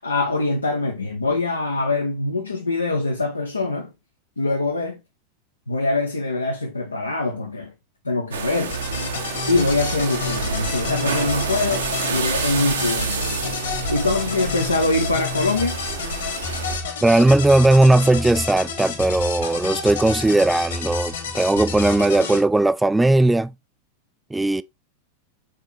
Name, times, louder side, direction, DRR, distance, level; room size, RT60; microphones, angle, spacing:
voice 1, 0.0-3.9 4.4-5.0 5.7-7.7 8.0-8.8 9.5-15.8, left 2 dB, 80° left, 0.9 m, -24 dB
sound 1, 8.3-16.8, right 5 dB, 70° right, 1.2 m, -29 dB
sound 2, 8.7-22.4, left 3 dB, 65° left, 2.0 m, -29 dB
voice 2, 17.0-23.5 24.3-24.6, right 2 dB, 5° right, 0.3 m, -17 dB
6.6 x 4.5 x 3.4 m
figure-of-eight pair, 90°, 0 cm